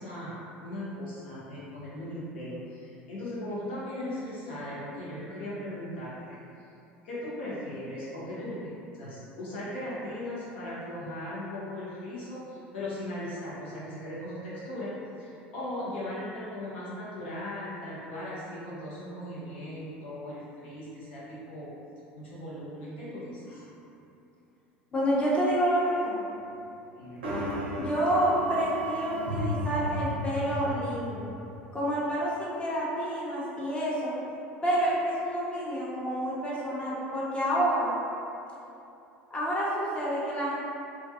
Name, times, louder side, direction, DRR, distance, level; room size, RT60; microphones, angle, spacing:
voice 1, 0.0-6.4 7.0-8.7 8.9-14.9 15.2-21.7 22.1-23.6 27.0-27.2, left 1 dB, 80° left, -10 dB, 0.8 m, -38 dB
voice 2, 24.9-26.2 27.8-31.3 31.7-34.1 34.6-37.9 39.3-40.5, right 1 dB, 20° left, -7 dB, 0.7 m, -28 dB
sound 1, 27.2-31.3, equal, 85° right, 0.5 m, -33 dB
2.3 x 2.2 x 2.7 m, 2.8 s
hypercardioid pair, 75°, 6 cm